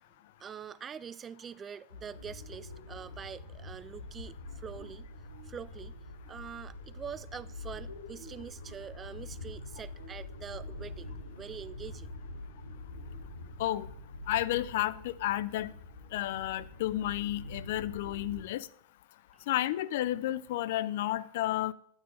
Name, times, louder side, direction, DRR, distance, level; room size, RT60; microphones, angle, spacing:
voice 1, 0.4-5.1 5.4-6.0 6.3-12.1, right 7 dB, 20° right, 0.3 m, -45 dB
sound 1, 1.9-18.4, left 2 dB, 80° left, 2.9 m, -45 dB
voice 2, 14.3-15.7 16.1-18.7 19.5-21.7, left 14 dB, 55° left, 0.4 m, -31 dB
12.0 x 8.9 x 3.8 m
figure-of-eight pair, 90°, 0 cm